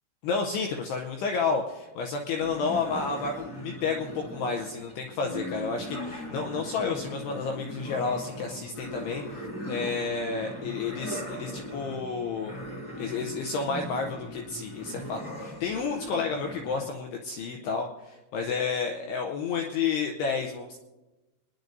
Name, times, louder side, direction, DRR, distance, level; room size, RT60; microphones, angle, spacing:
voice 1, 0.2-12.6 13.0-20.8, left 5 dB, 90° left, 3 dB, 2.3 m, -31 dB
sound 1, 2.4-16.8, equal, 15° left, 1.8 m, -39 dB
29.0 x 10.5 x 2.6 m, 1.1 s
omnidirectional pair, 5.7 m